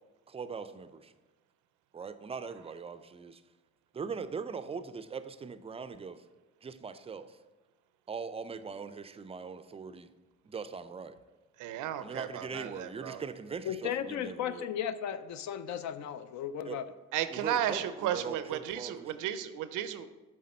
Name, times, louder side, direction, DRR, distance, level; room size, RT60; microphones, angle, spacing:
voice 1, 0.3-1.1 1.9-3.4 3.9-6.2 6.6-7.4 8.1-10.1 10.4-11.2 12.0-14.6 16.6-16.8 17.3-19.2, right 5 dB, 20° right, 11 dB, 0.3 m, -41 dB
voice 2, 11.6-13.2 17.1-20.1, right 10 dB, 85° right, 12 dB, 0.5 m, -34 dB
voice 3, 13.6-16.9, left 9 dB, 65° left, 12 dB, 0.5 m, -35 dB
7.7 x 3.7 x 4.2 m, 1.2 s
cardioid pair, 90°, 30 cm